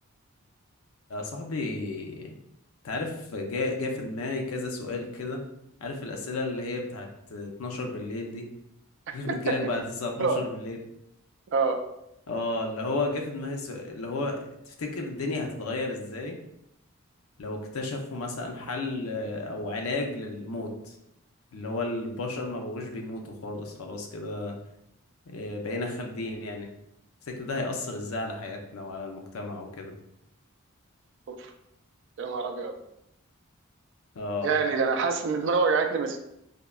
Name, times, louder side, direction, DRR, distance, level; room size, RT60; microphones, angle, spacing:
voice 1, 1.1-2.3 2.8-5.4 5.8-8.5 9.1-10.8 12.3-16.4 17.4-21.0 21.5-24.6 25.3-26.7 27.3-29.9 34.2-34.6, left 2 dB, 85° left, 2 dB, 0.5 m, -33 dB
voice 2, 32.2-32.7 34.4-36.2, right 4 dB, 55° right, 5 dB, 0.3 m, -26 dB
3.5 x 2.0 x 2.2 m, 0.80 s
head